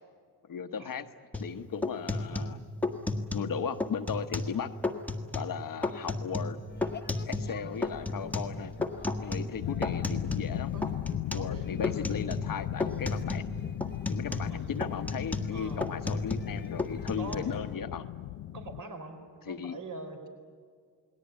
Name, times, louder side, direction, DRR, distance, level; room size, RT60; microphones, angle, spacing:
voice 1, 0.5-1.1 1.4-2.6 3.3-4.7 5.3-6.6 7.3-8.7 9.2-10.7 11.3-13.5 14.1-18.0 19.5-19.8, left 7 dB, 55° left, 8 dB, 1.1 m, -36 dB
sound 1, 1.3-1.5 1.8-3.5 3.8-4.6 4.8-5.5 5.8-7.6 7.8-10.5 10.8-11.5 11.8-12.5 12.8-13.5 13.8-16.5 16.8-17.3, left 2 dB, 5° left, 1.5 m, -33 dB
sound 2, 6.7-17.7, left 6 dB, 25° left, 0.9 m, -44 dB
sound 3, 9.6-18.8, left 14 dB, 80° left, 0.6 m, -37 dB
voice 2, 11.3-11.7 14.5-14.7 15.5-15.9 17.2-17.6 18.5-20.3, right 3 dB, 50° right, 4 dB, 4.5 m, -43 dB
29.0 x 20.0 x 9.6 m, 2.1 s
wide cardioid pair, 160°, 40 cm